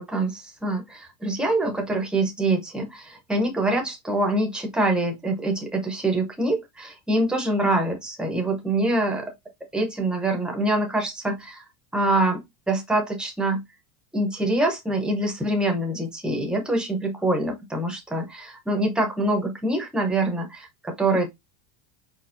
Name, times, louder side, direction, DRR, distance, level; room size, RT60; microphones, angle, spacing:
voice 1, 0.0-9.3 9.7-11.6 11.9-13.6 14.1-21.3, right 2 dB, ahead, 0.5 m, -25 dB
4.8 x 4.3 x 2.4 m
cardioid pair, 170°, 50 cm